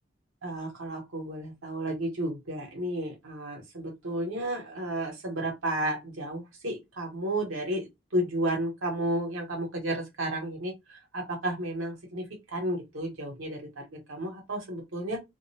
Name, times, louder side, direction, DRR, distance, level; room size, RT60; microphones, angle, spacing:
voice 1, 0.4-15.2, right 1 dB, 85° right, 1.1 m, -32 dB
2.5 x 2.1 x 2.7 m
head